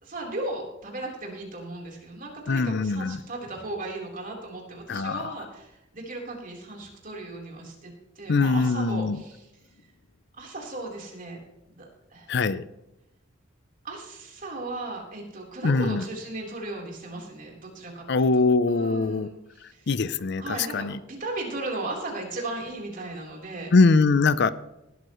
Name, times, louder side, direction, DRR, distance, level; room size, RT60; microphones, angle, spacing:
voice 1, 0.0-9.5 10.4-12.4 13.8-19.9 20.4-23.7, right 2 dB, 45° right, -1 dB, 3.8 m, -36 dB
voice 2, 2.5-3.2 4.9-5.3 8.3-9.2 12.3-12.6 15.6-16.0 18.1-19.3 19.9-20.9 23.7-24.5, left 3 dB, 60° left, 16 dB, 0.5 m, -22 dB
18.5 x 12.5 x 3.1 m, 0.92 s
head